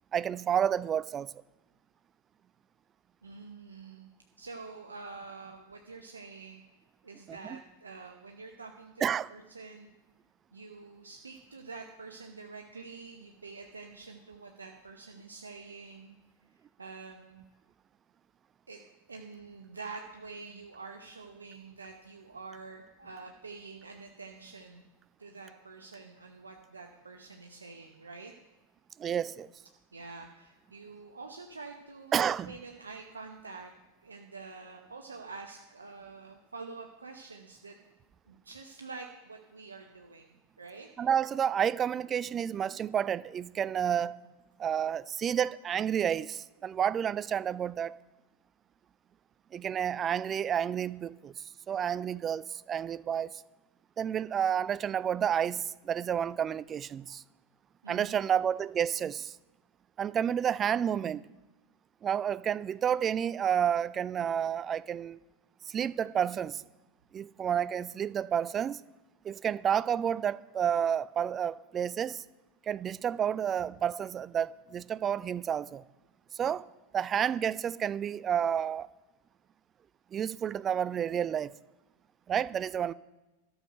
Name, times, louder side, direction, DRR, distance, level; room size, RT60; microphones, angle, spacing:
voice 1, 0.1-1.3 7.3-7.6 9.0-9.3 29.0-29.5 32.1-32.6 41.0-44.2 44.6-48.0 49.5-51.3 51.7-53.3 54.0-57.2 57.9-59.3 60.0-61.3 62.0-65.2 65.7-66.6 67.1-68.8 69.2-72.2 72.7-75.8 76.3-76.7 76.9-78.9 80.1-81.6 82.3-82.9, right 8 dB, 25° right, 0.3 m, -30 dB
voice 2, 3.2-4.1 4.4-6.6 7.0-9.9 10.5-16.2 16.5-17.4 18.7-18.8 19.1-24.9 25.2-28.3 29.9-33.7 34.0-37.8 38.3-40.9 57.8-58.4, right 4 dB, 75° right, 0.9 m, -47 dB
12.5 x 6.3 x 6.5 m
figure-of-eight pair, 90°, 0 cm